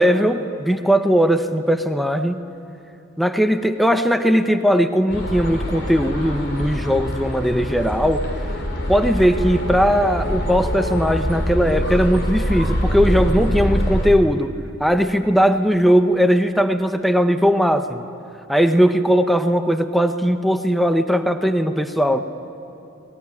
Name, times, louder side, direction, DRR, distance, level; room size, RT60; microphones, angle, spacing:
voice 1, 0.0-2.4 3.2-8.3 8.9-14.5 14.8-18.0 18.5-22.2, equal, ahead, 8 dB, 0.9 m, -18 dB
sound 1, 5.1-14.1, equal, 55° left, 3.7 m, -24 dB
25.0 x 20.5 x 9.9 m, 2.9 s
head